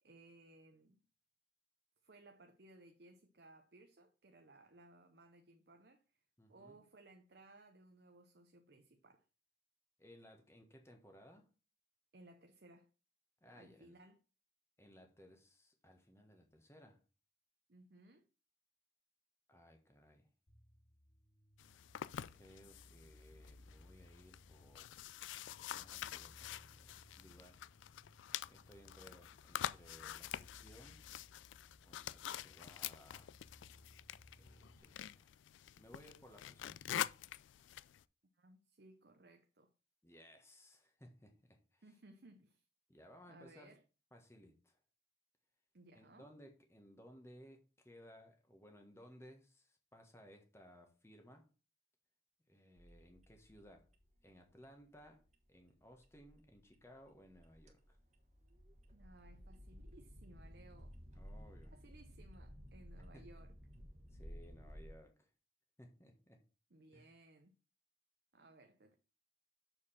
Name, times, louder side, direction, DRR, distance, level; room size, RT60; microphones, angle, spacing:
voice 1, 0.0-1.0 2.0-6.2 6.5-9.2 12.1-12.9 13.5-14.2 17.7-18.3 38.3-39.7 41.8-42.6 43.3-43.8 45.7-46.3 58.9-61.0 61.7-63.5 66.7-67.5 68.3-68.9, right 2 dB, 60° right, 0.7 m, -62 dB
voice 2, 6.4-6.8 10.0-11.5 13.4-14.0 14.8-17.0 19.5-20.3 22.3-25.0 25.7-27.6 28.5-31.0 31.8-33.3 34.4-35.3 35.8-36.8 40.0-41.8 42.9-43.7 44.1-44.8 45.9-51.5 52.5-53.9 54.2-55.2 55.5-58.0 61.1-61.7 63.1-63.3 64.1-65.3 65.8-66.4 66.9-67.1, equal, 15° left, 1.4 m, -61 dB
sound 1, 20.5-34.8, left 1 dB, 55° left, 2.0 m, -64 dB
sound 2, 21.6-38.0, left 11 dB, 80° left, 0.3 m, -47 dB
sound 3, 52.8-64.9, equal, 35° right, 1.3 m, -56 dB
6.6 x 4.9 x 5.7 m
head